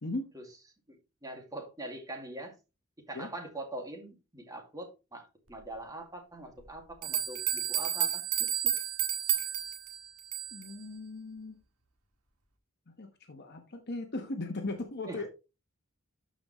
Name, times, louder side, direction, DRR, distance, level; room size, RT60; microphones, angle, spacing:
voice 1, 0.9-2.5 3.1-8.5 15.1-15.2, right 2 dB, 15° right, 2.3 m, -43 dB
sound 1, 6.6-6.7 7.0-10.7, right 9 dB, 80° right, 1.8 m, -31 dB
voice 2, 10.5-11.6 12.9-15.3, left 2 dB, 50° left, 1.2 m, -38 dB
13.0 x 5.2 x 3.1 m
head